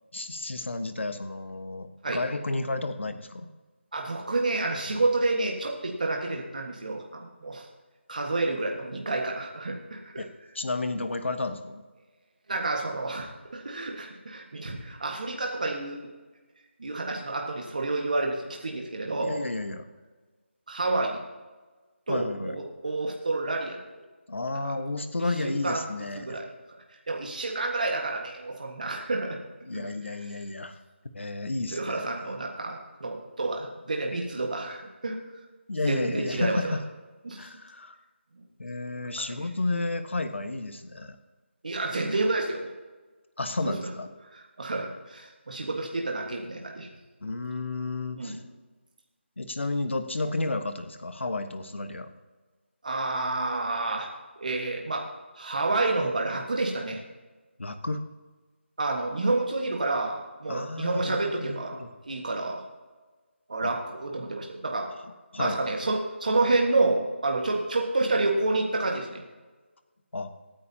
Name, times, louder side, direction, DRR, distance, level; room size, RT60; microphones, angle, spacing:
voice 1, 0.1-3.5 10.2-10.3 10.5-11.8 19.2-19.8 22.1-22.6 24.3-26.4 29.6-30.7 31.1-32.0 35.7-36.8 37.4-38.0 38.6-41.2 43.4-44.1 47.2-48.4 49.4-52.1 57.6-58.0 60.5-61.9 63.6-63.7 65.3-65.6 70.1-70.3, left 2 dB, 70° left, 8 dB, 1.4 m, -32 dB
voice 2, 3.9-7.7 8.1-10.2 12.5-16.1 16.8-19.4 20.7-21.2 22.1-23.8 24.6-24.7 25.4-25.9 26.1-26.5 27.1-29.4 29.7-29.8 31.7-35.2 35.9-36.7 37.2-37.5 41.6-42.7 43.7-43.9 44.3-46.9 48.2-48.4 52.8-54.1 54.4-55.1 55.4-57.0 58.8-61.8 62.0-62.6 63.5-64.9 65.4-69.2, right 2 dB, 40° right, 0 dB, 1.6 m, -29 dB
25.5 x 9.4 x 2.9 m, 1.3 s
figure-of-eight pair, 180°, 7 cm